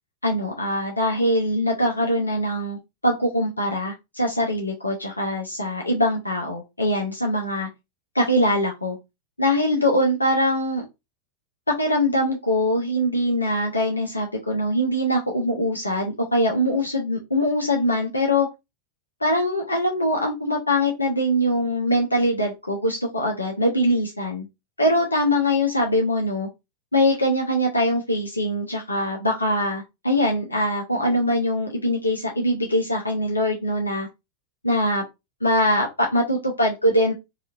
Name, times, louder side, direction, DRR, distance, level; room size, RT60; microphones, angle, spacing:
voice 1, 0.2-2.8 3.0-7.7 8.1-9.0 9.4-10.9 11.8-18.5 19.2-24.4 24.8-26.5 26.9-34.1 34.6-35.0 35.4-37.1, equal, 80° left, 0 dB, 0.5 m, -22 dB
2.8 x 2.4 x 2.4 m, 0.23 s
figure-of-eight pair, 90°, 0 cm